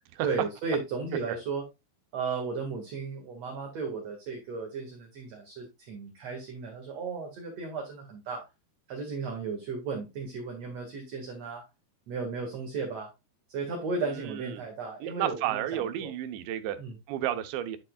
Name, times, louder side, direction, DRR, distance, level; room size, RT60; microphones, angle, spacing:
voice 1, 0.2-1.6 2.1-8.5 8.9-11.6 12.1-13.1 13.5-16.1 16.8-17.0, right 4 dB, 50° right, 2.2 m, -35 dB
voice 2, 14.2-14.6 15.0-16.8 17.1-17.8, right 12 dB, 85° right, 3.2 m, -32 dB
10.5 x 6.8 x 2.3 m
omnidirectional pair, 5.0 m